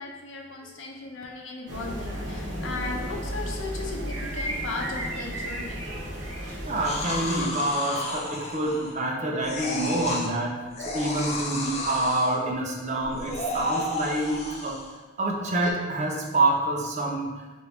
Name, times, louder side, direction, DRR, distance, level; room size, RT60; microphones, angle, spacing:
voice 1, 0.0-5.8, left 3 dB, 85° left, 0 dB, 0.6 m, -36 dB
sound 1, 1.7-7.4, right 1 dB, 70° right, 0.9 m, -33 dB
voice 2, 6.7-14.8 15.2-17.3, right 2 dB, 40° right, 0 dB, 0.6 m, -27 dB
sound 2, 6.8-9.1 9.4-10.3 10.7-12.4 13.0-15.0 15.6-15.7, left 2 dB, 35° left, 0.5 m, -33 dB
4.4 x 2.6 x 3.4 m, 1.2 s
head